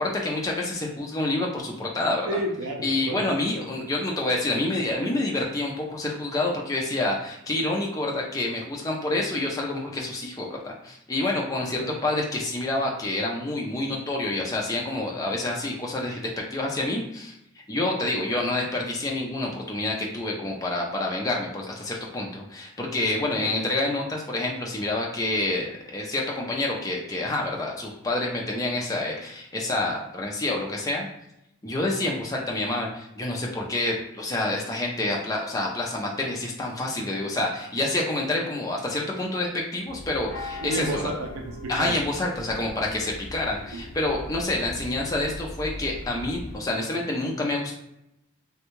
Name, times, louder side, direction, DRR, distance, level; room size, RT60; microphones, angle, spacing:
voice 1, 0.0-2.3 2.8-17.4 17.7-31.1 31.6-41.0 41.7-47.8, left 2 dB, 15° left, -1 dB, 0.4 m, -28 dB
voice 2, 2.3-3.2 3.6-3.7 11.8-11.9 23.4-23.5 40.6-42.0 43.7-43.8, right 1 dB, 80° right, 2 dB, 0.4 m, -31 dB
sound 1, 39.9-46.6, left 1 dB, 50° left, 0.8 m, -39 dB
2.6 x 2.2 x 3.0 m, 0.80 s
head